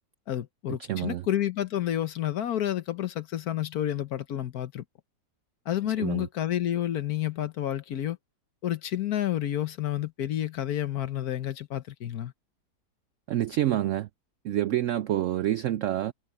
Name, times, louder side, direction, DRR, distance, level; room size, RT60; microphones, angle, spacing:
voice 1, 0.3-4.8 5.7-8.2 8.6-12.3, left 12 dB, 65° left, 1.4 m, -30 dB
voice 2, 0.9-1.2 6.0-6.3 13.3-14.1 14.4-16.1, right 12 dB, 80° right, 0.7 m, -27 dB
omnidirectional pair, 1.8 m